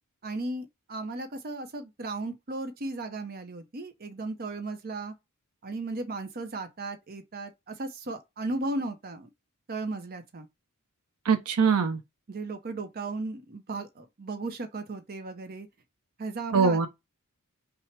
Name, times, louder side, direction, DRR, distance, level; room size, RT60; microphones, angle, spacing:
voice 1, 0.2-5.1 5.6-9.3 9.7-10.5 12.3-15.7 16.2-16.9, right 2 dB, 45° right, 0.6 m, -35 dB
voice 2, 11.3-12.0 16.5-16.9, right 5 dB, 80° right, 0.7 m, -22 dB
5.7 x 2.1 x 3.2 m
head